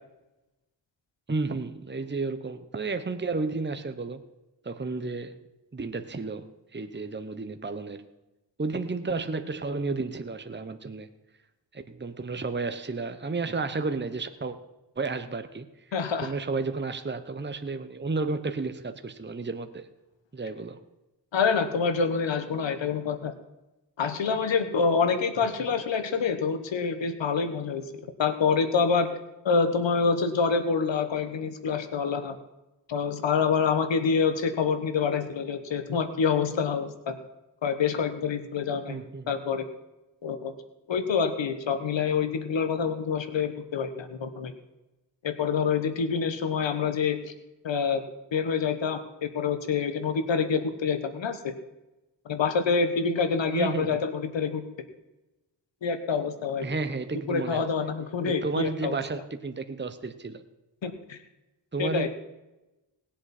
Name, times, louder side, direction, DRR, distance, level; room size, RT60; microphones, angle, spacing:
voice 1, 1.3-4.2 4.6-5.4 5.7-8.1 8.6-11.1 11.7-14.6 15.0-15.7 16.2-19.9 20.3-20.8 38.9-39.3 53.5-54.0 56.6-57.7 58.2-60.4 61.7-62.1, right 3 dB, 25° right, 9 dB, 1.0 m, -32 dB
voice 2, 15.9-16.3 21.3-23.3 24.0-27.9 28.2-29.1 29.4-32.4 32.9-37.2 37.6-39.0 39.3-39.7 40.2-40.5 40.9-44.5 45.2-47.2 47.6-48.0 48.3-51.5 52.2-54.6 55.8-56.7 57.3-59.0 60.8-61.2 61.8-62.1, left 5 dB, 80° left, 9 dB, 1.3 m, -26 dB
19.5 x 7.6 x 4.3 m, 1.0 s
cardioid pair, 45°, 44 cm